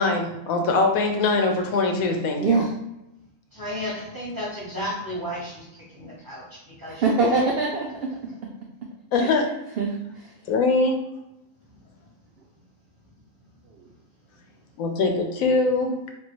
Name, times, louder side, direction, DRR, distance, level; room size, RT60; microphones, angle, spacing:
voice 1, 0.0-2.6 9.1-9.5 10.5-11.0 14.8-16.1, left 3 dB, 75° left, 3 dB, 1.0 m, -22 dB
voice 2, 2.4-2.7 7.0-8.1 9.2-10.3 13.8-13.9, right 3 dB, 75° right, -1 dB, 0.5 m, -24 dB
voice 3, 3.5-5.6 5.9-7.5, equal, 15° right, -7 dB, 0.9 m, -33 dB
3.4 x 2.3 x 2.9 m, 0.90 s
omnidirectional pair, 1.5 m